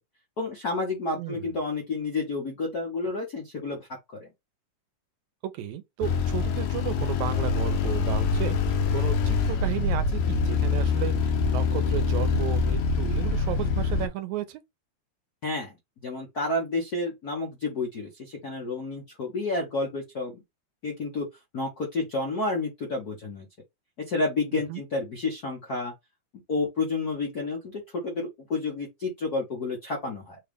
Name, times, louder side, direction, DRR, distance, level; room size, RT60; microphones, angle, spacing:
voice 1, 0.4-3.9 4.2-4.3 15.4-15.8 16.0-20.4 20.8-21.3 21.5-23.5 24.1-25.9 26.5-30.4, left 3 dB, 60° left, 1.0 m, -30 dB
voice 2, 1.2-1.5 5.4-14.6 24.5-24.8, right 11 dB, 80° right, 2.1 m, -34 dB
sound 1, 6.0-14.1, left 4 dB, 85° left, 2.3 m, -25 dB
6.2 x 2.4 x 3.5 m
omnidirectional pair, 3.3 m